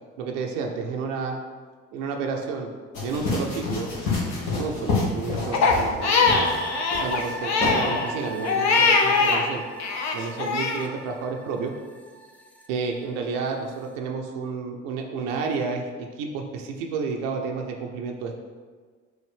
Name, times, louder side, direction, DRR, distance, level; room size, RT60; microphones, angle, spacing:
voice 1, 0.2-1.4 1.9-2.7 3.0-3.9 4.5-6.3 6.9-9.6 10.1-11.7 12.7-18.4, right 4 dB, 70° right, 1 dB, 0.6 m, -31 dB
sound 1, 2.9-6.0 6.3-6.6 6.9-7.3 7.6-7.8, left 3 dB, 75° left, 1.2 m, -27 dB
Crying sobbing, 5.5-9.4 9.8-10.8, left 4 dB, 45° left, 0.7 m, -22 dB
sound 2, 6.0-13.3 13.7-13.8, right 2 dB, 5° left, 0.5 m, -39 dB
6.2 x 2.5 x 3.3 m, 1.5 s
hypercardioid pair, 55°, 39 cm